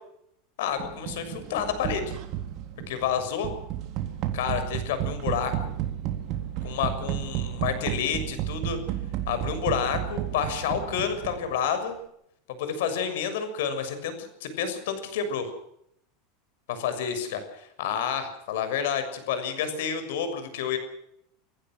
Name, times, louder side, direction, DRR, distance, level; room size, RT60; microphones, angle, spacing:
voice 1, 0.6-2.0 2.9-3.5 4.3-5.7 6.6-8.8 9.3-12.0 12.5-14.1 14.4-15.4 16.7-20.8, left 7 dB, 75° left, 10 dB, 6.6 m, -29 dB
sound 1, 0.8-11.7, right 12 dB, 45° right, 3.8 m, -32 dB
28.5 x 16.0 x 6.3 m, 0.74 s
supercardioid pair, 145°, 0 cm